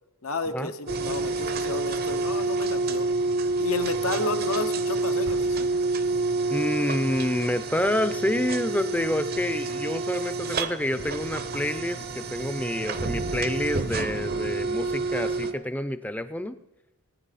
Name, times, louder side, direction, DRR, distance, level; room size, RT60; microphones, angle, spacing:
voice 1, 0.2-3.1 3.6-5.7, left 3 dB, 75° left, 9 dB, 1.0 m, -32 dB
sound 1, 0.9-15.5, right 3 dB, 45° right, 0.7 m, -28 dB
Explosion, 5.2-6.9, right 1 dB, 85° right, 1.3 m, -46 dB
voice 2, 6.5-16.6, left 1 dB, 5° left, 11 dB, 0.5 m, -28 dB
19.5 x 9.7 x 4.2 m, 0.95 s
head